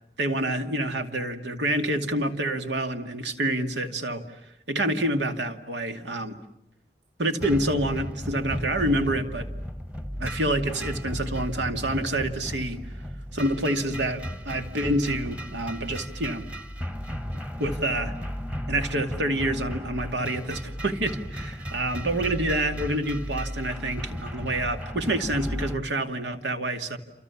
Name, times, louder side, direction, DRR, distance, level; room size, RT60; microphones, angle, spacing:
voice 1, 0.2-4.4 4.7-6.4 7.2-9.5 10.2-12.9 13.3-16.5 17.6-18.1 18.7-27.0, right 1 dB, 75° right, 7 dB, 2.5 m, -27 dB
sound 1, 7.4-25.8, equal, 10° right, 1.5 m, -35 dB
28.5 x 28.5 x 7.2 m, 0.84 s
head